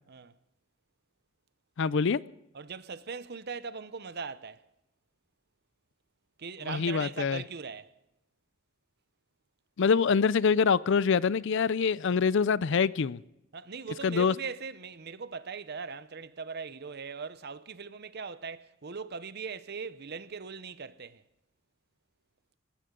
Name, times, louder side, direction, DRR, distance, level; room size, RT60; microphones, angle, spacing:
voice 1, 1.8-2.2 6.6-7.4 9.8-13.2 14.0-14.3, left 5 dB, 60° left, 0.5 m, -25 dB
voice 2, 2.5-4.6 6.4-7.9 13.5-21.2, right 5 dB, 50° right, 0.7 m, -40 dB
19.5 x 17.5 x 3.8 m
head